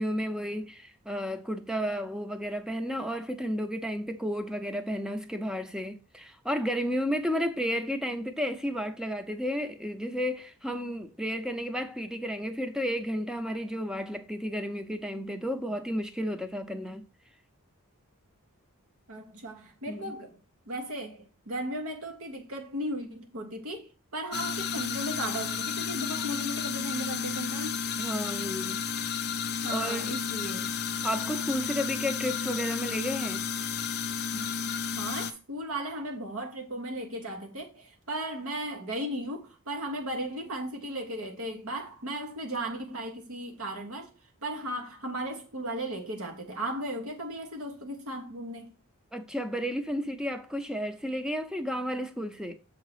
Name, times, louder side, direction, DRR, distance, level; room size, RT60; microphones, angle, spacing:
voice 1, 0.0-17.0 19.9-20.1 28.0-28.8 29.7-30.1 31.0-33.4 34.3-34.5 49.1-52.5, equal, 5° right, 0.7 m, -32 dB
voice 2, 19.1-20.3 20.7-27.8 29.6-30.7 34.9-44.1 44.4-48.7, right 1 dB, 70° right, 1.2 m, -36 dB
sound 1, 24.3-35.3, left 6 dB, 50° left, 0.6 m, -32 dB
7.1 x 3.8 x 4.9 m
head